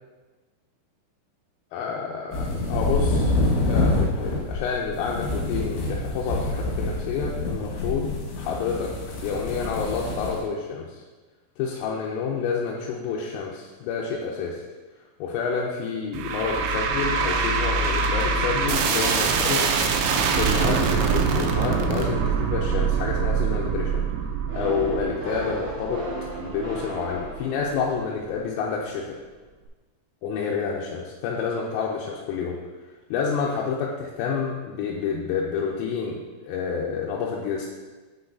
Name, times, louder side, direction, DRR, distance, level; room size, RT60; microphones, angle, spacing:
voice 1, 1.7-3.4 3.7-8.1 8.4-8.9 9.2-11.0 11.6-14.6 15.2-19.9 20.3-24.0 24.5-26.0 26.4-29.1 30.2-32.6 33.1-37.7, left 5 dB, 85° left, -2 dB, 3.2 m, -29 dB
sound 1, 2.3-10.4, left 2 dB, 65° left, 3.0 m, -26 dB
sound 2, 16.1-27.4, right 5 dB, 80° right, 2.8 m, -24 dB
sound 3, 24.5-28.0, right 1 dB, 65° right, 1.3 m, -34 dB
8.7 x 5.8 x 2.6 m, 1.3 s
omnidirectional pair, 6.0 m